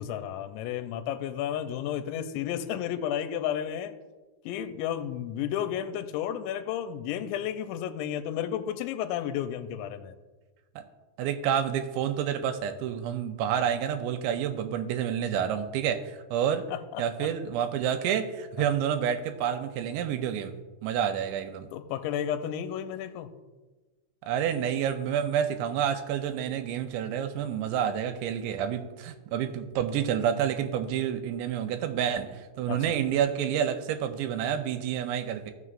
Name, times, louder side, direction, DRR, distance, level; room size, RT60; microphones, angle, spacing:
voice 1, 0.0-3.9 4.5-10.1 16.7-17.3 18.6-18.7 21.7-23.3 32.7-33.0, left 10 dB, 85° left, 9 dB, 2.9 m, -32 dB
voice 2, 11.2-16.7 17.0-20.6 20.8-21.7 24.2-35.5, right 9 dB, 85° right, 6 dB, 2.8 m, -29 dB
16.0 x 6.3 x 2.5 m, 1.2 s
omnidirectional pair, 5.1 m